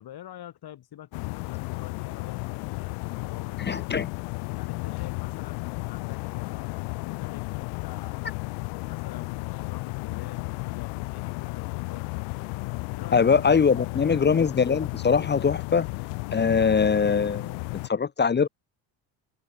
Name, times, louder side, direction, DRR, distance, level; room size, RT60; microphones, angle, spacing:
voice 1, 0.0-3.7 4.5-8.3 8.9-12.3 12.9-14.3, left 12 dB, 60° left, 6.6 m, -46 dB
sound 1, 1.1-17.9, left 40 dB or more, 85° left, 1.8 m, -33 dB
voice 2, 3.6-4.1 13.1-15.9 16.3-17.6 17.9-18.5, left 6 dB, 25° left, 0.8 m, -22 dB
supercardioid pair, 75°, 42 cm